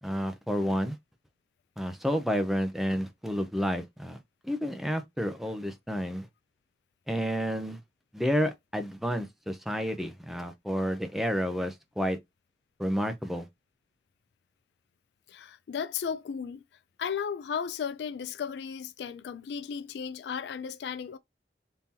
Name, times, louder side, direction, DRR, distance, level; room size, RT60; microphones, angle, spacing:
voice 1, 0.0-1.0 1.8-4.2 4.4-6.3 7.1-7.8 8.1-12.2 12.8-13.4, equal, ahead, 0.6 m, -30 dB
voice 2, 15.3-16.6 17.0-21.2, left 7 dB, 70° left, 0.3 m, -35 dB
3.7 x 2.8 x 2.8 m
head